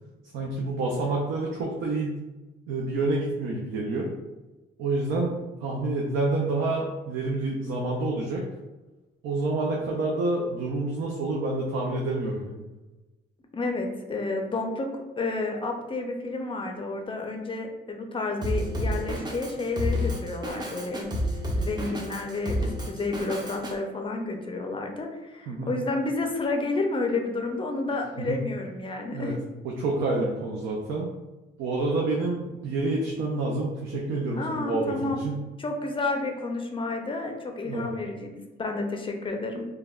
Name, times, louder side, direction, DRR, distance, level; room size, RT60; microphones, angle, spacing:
voice 1, 0.3-2.2 2.7-4.1 4.8-8.5 9.2-12.6 25.5-25.7 28.2-28.4 29.1-29.3 29.6-31.1 31.6-35.4 37.6-37.9, right 2 dB, 85° right, -1 dB, 0.5 m, -28 dB
voice 2, 13.5-21.1 21.6-29.3 34.4-35.2 35.6-38.3 38.6-39.7, left 3 dB, 25° left, 3 dB, 0.4 m, -30 dB
Drum kit, 18.4-23.7, equal, 20° right, 0.6 m, -30 dB
3.3 x 2.2 x 2.3 m, 1.1 s
cardioid pair, 90°, 20 cm